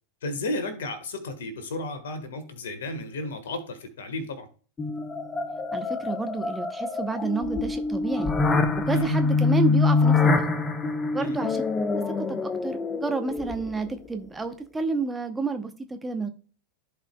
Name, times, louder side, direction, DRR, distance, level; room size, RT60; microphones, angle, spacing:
voice 1, 0.2-4.5 8.9-9.2 11.2-11.4, left 1 dB, 60° left, 9 dB, 1.6 m, -33 dB
sound 1, 4.8-13.9, left 4 dB, 20° left, 0.8 m, -25 dB
voice 2, 5.7-8.3 8.8-10.4 11.1-11.6 11.9-16.3, right 3 dB, 10° right, 7 dB, 0.8 m, -30 dB
14.5 x 4.9 x 2.3 m, 0.40 s
figure-of-eight pair, 90°, 0 cm